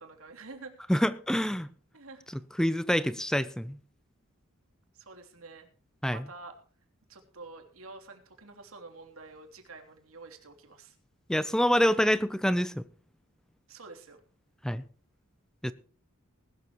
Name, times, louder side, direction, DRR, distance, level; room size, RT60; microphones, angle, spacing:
voice 1, 0.0-0.7 1.9-2.2 3.4-3.5 4.9-5.7 6.1-6.5 7.1-11.0 13.7-14.2, right 3 dB, 85° right, 3.2 m, -48 dB
voice 2, 0.9-1.7 2.6-3.8 6.0-6.2 11.3-12.8 14.6-14.8 15.6-15.7, equal, 5° left, 0.6 m, -26 dB
20.0 x 12.5 x 3.1 m
head